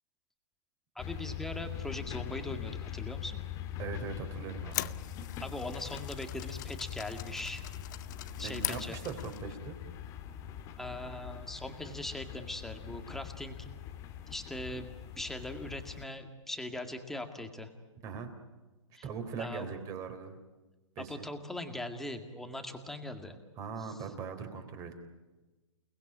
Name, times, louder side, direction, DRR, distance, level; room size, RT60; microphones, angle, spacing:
sound 1, 1.0-16.0, left 10 dB, 20° left, 1.7 m, -42 dB
voice 1, 1.0-3.4 5.4-7.6 8.4-9.0 10.8-13.7 14.3-17.7 18.9-19.1 19.4-19.7 21.0-23.4 23.8-23.9, left 1 dB, ahead, 6 dB, 2.1 m, -40 dB
voice 2, 3.8-5.0 8.4-9.8 18.0-18.3 19.0-20.4 21.0-21.3 23.6-25.0, right 6 dB, 20° right, 7 dB, 3.6 m, -40 dB
sound 2, 4.4-9.5, left 14 dB, 35° left, 0.8 m, -41 dB
29.0 x 20.0 x 8.9 m, 1.2 s
hypercardioid pair, 155°, 16 cm